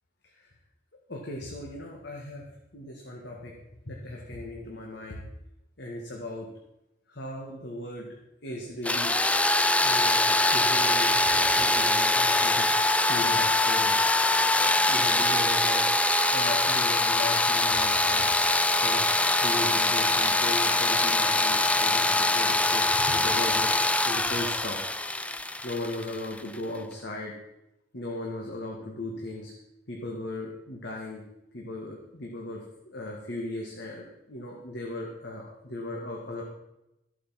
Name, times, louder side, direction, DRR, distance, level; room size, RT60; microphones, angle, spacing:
voice 1, 1.1-2.4 2.7-3.5 3.9-5.2 5.8-6.5 7.1-8.1 8.4-9.1 9.8-12.8 13.1-13.9 14.9-15.9 16.3-18.3 18.8-19.0 19.4-23.8 24.0-24.8 25.6-27.3 27.9-29.5 29.9-31.2 31.5-36.4, left 1 dB, 55° left, -1 dB, 1.8 m, -37 dB
sound 1, 8.8-26.6, left 2 dB, 5° left, 0.4 m, -23 dB
14.0 x 8.3 x 5.8 m, 0.91 s
head